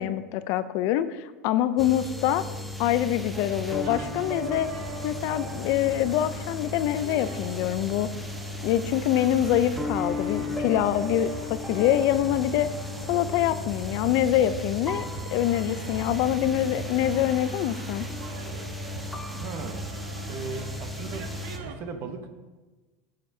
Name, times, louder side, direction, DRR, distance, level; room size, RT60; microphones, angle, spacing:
voice 1, 0.0-2.4 2.8-4.7 5.0-8.1 8.6-12.7 13.1-15.1 15.3-18.1, left 12 dB, 50° left, 13 dB, 0.4 m, -25 dB
sound 1, 1.8-21.6, left 2 dB, ahead, 0.6 m, -35 dB
sound 2, 3.3-21.7, right 5 dB, 75° right, 1.0 m, -42 dB
voice 2, 19.4-19.9 20.3-22.3, right 4 dB, 40° right, 7 dB, 0.9 m, -37 dB
14.5 x 6.6 x 2.7 m, 1.2 s
supercardioid pair, 165°, 6 cm